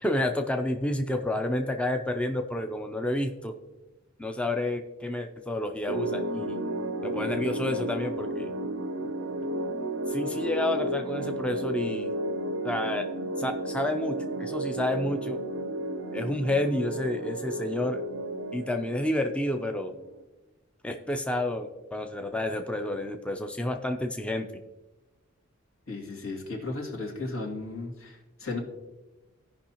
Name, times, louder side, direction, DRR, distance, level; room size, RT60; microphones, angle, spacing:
voice 1, 0.0-3.5 4.2-6.6 7.0-8.5 10.1-12.1 12.6-13.1 13.4-15.4 16.1-18.0 18.5-19.9 20.8-24.5, left 1 dB, 5° left, 5 dB, 0.5 m, -30 dB
sound 1, 5.9-20.2, right 1 dB, 75° right, 0.6 m, -33 dB
voice 2, 25.9-28.6, left 3 dB, 75° left, -1 dB, 2.3 m, -35 dB
16.0 x 5.5 x 2.9 m, 1.1 s
head